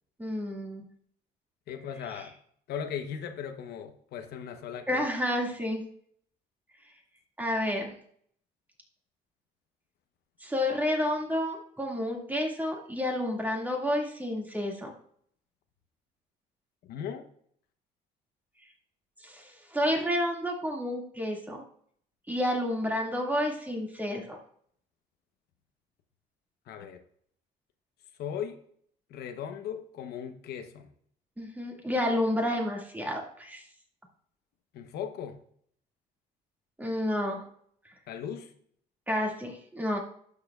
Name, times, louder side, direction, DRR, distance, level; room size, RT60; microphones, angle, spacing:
voice 1, 0.2-0.8 2.2-2.3 4.9-5.8 7.4-7.9 10.4-14.9 19.2-21.6 22.3-24.4 31.4-33.6 36.8-37.4 39.1-40.0, left 1 dB, 10° right, 0 dB, 2.1 m, -30 dB
voice 2, 1.7-2.3 2.7-5.1 16.9-17.2 26.7-27.0 28.2-28.6 29.1-30.9 34.7-35.4 38.1-38.5, left 8 dB, 70° left, 6 dB, 1.0 m, -37 dB
11.5 x 6.7 x 2.4 m, 0.63 s
cardioid pair, 110°, 17 cm